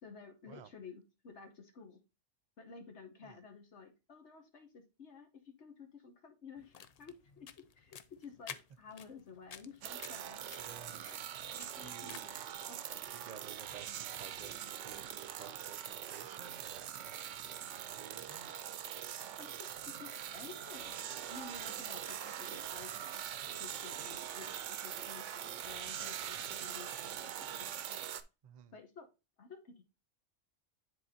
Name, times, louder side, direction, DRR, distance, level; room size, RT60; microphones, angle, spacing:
voice 1, 0.0-2.0 2.6-10.4 11.5-12.4 12.7-13.0 19.4-21.0 21.3-28.2 28.7-29.1 29.4-29.8, left 5 dB, 65° left, 1.3 m, -53 dB
sound 1, 6.6-12.5, left 7 dB, 90° left, 0.3 m, -53 dB
sound 2, 9.8-28.2, right 10 dB, 75° right, 0.9 m, -43 dB
voice 2, 10.6-11.1 11.8-12.3 13.1-13.9 14.1-17.2 17.5-18.5 28.4-28.7, right 8 dB, 50° right, 0.5 m, -54 dB
10.0 x 4.0 x 2.7 m
omnidirectional pair, 1.3 m